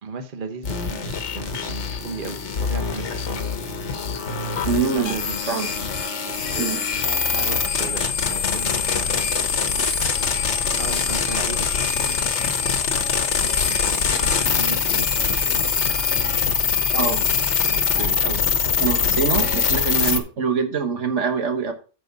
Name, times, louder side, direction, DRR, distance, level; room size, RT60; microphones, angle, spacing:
voice 1, 0.0-3.5 4.6-5.4 6.3-9.8 10.8-12.3 13.3-15.7 16.8-17.1 17.7-18.6, right 5 dB, 45° right, 7 dB, 1.2 m, -36 dB
sound 1, 0.6-20.2, left 6 dB, 70° left, 1.3 m, -23 dB
voice 2, 4.6-5.2 5.5-5.7 6.6-6.8 17.0-17.2 18.8-21.7, right 5 dB, 80° right, 6 dB, 1.6 m, -24 dB
9.3 x 6.3 x 4.0 m, 0.36 s
omnidirectional pair, 1.2 m